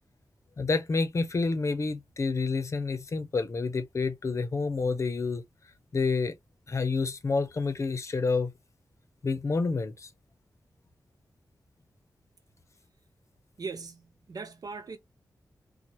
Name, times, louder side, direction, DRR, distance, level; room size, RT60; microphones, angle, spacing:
voice 1, 0.6-5.4 5.9-6.3 6.7-8.5 9.2-10.1, left 4 dB, 45° left, 0.7 m, -28 dB
voice 2, 13.6-15.0, right 4 dB, 65° right, 1.1 m, -39 dB
4.4 x 2.3 x 3.1 m
wide cardioid pair, 155°, 7 cm